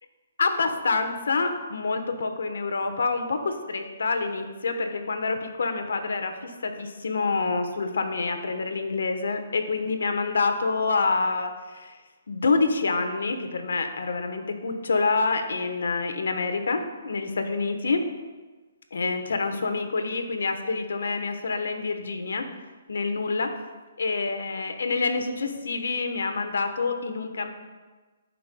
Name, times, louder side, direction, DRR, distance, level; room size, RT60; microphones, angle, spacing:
voice 1, 0.4-12.0 12.3-18.0 18.9-22.5 22.9-23.5 24.0-27.6, left 4 dB, 80° left, 6 dB, 1.1 m, -27 dB
16.0 x 5.7 x 2.3 m, 1.3 s
hypercardioid pair, 150°, 0 cm